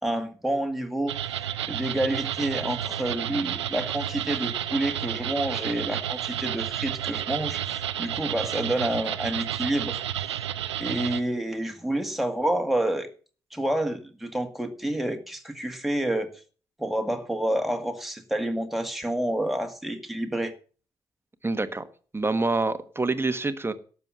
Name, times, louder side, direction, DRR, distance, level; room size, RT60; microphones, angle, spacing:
voice 1, 0.0-1.1 1.7-10.0 10.8-13.1 13.5-16.3 16.8-20.5, right 1 dB, ahead, 4 dB, 2.0 m, -28 dB
sound 1, 1.1-11.2, right 11 dB, 85° right, 0.5 m, -31 dB
voice 2, 21.4-21.8 22.1-23.7, right 3 dB, 15° right, 10 dB, 1.3 m, -26 dB
12.0 x 7.1 x 7.6 m, 0.41 s
figure-of-eight pair, 45°, 14 cm